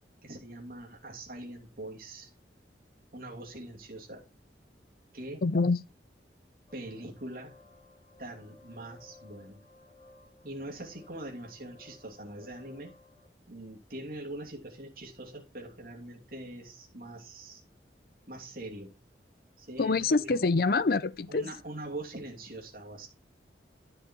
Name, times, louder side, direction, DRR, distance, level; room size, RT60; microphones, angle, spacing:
voice 1, 0.2-2.3 3.1-4.2 5.1-5.4 6.7-7.6 8.2-9.6 10.4-12.9 13.5-17.6 18.3-18.9 19.6-20.4 21.3-23.1, right 1 dB, 55° right, 2.8 m, -43 dB
voice 2, 5.4-5.8 19.8-21.4, left 3 dB, 55° left, 0.5 m, -26 dB
sound 1, 6.7-13.3, left 3 dB, 30° left, 3.0 m, -58 dB
11.0 x 6.2 x 4.5 m
head